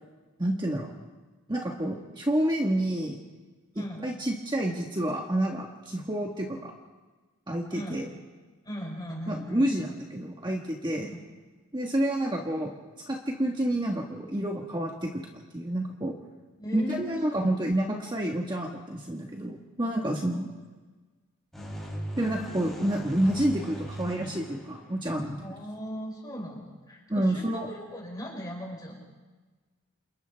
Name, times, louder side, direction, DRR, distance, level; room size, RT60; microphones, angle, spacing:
voice 1, 0.4-0.9 1.5-3.2 3.7-6.7 7.5-8.1 9.3-11.1 11.7-12.7 13.1-16.2 16.7-20.5 22.2-25.4 27.1-27.7, right 1 dB, 20° right, 0 dB, 1.4 m, -29 dB
voice 2, 7.7-8.0 8.6-9.7 11.0-11.2 16.6-17.6 20.3-20.5 25.4-29.0, equal, 20° left, -3 dB, 6.0 m, -38 dB
sound 1, 21.5-25.3, right 1 dB, ahead, 7.2 m, -39 dB
29.0 x 28.0 x 3.5 m, 1.3 s
head